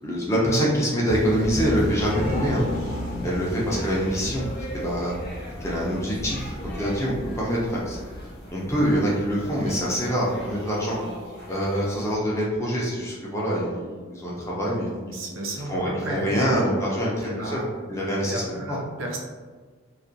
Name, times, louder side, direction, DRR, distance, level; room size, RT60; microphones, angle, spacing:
voice 1, 0.0-2.6 3.2-4.5 4.7-5.1 5.6-8.0 8.5-11.0 11.5-14.9 15.7-17.6 17.9-18.8, equal, 15° left, -5 dB, 0.4 m, -25 dB
sound 1, 1.0-12.2, equal, 45° left, 0.7 m, -36 dB
sound 2, 1.8-5.3, left 1 dB, 90° left, 0.6 m, -34 dB
voice 2, 15.1-16.3 17.2-17.6 18.2-19.2, right 1 dB, 75° right, 0 dB, 0.5 m, -33 dB
2.3 x 2.1 x 2.6 m, 1.5 s
head